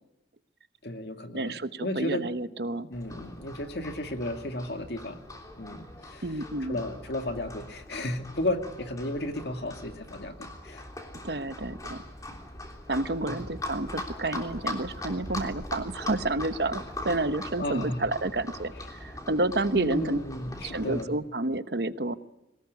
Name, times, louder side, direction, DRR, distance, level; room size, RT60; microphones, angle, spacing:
voice 1, 0.8-2.2 2.9-5.2 5.6-6.3 6.7-10.9 13.3-13.5 17.6-18.0 19.7-21.1, left 1 dB, 65° left, 6 dB, 2.3 m, -33 dB
voice 2, 1.3-2.9 6.2-6.8 11.2-12.0 12.9-20.2 20.6-22.1, right 2 dB, 60° right, 12 dB, 1.0 m, -30 dB
Livestock farm animals working animals, 2.9-21.0, left 1 dB, 20° left, 3.3 m, -41 dB
23.0 x 19.5 x 9.5 m, 0.93 s
head